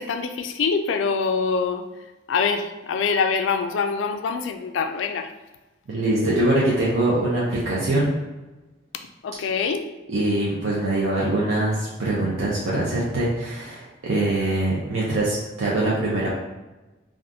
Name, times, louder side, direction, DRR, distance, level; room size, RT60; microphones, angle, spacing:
voice 1, 0.0-1.8 2.3-5.3 9.2-9.9, left 5 dB, 80° left, 7 dB, 0.3 m, -24 dB
voice 2, 5.9-8.1 10.1-16.3, right 1 dB, 85° right, -6 dB, 0.6 m, -23 dB
3.5 x 2.5 x 2.6 m, 1.1 s
head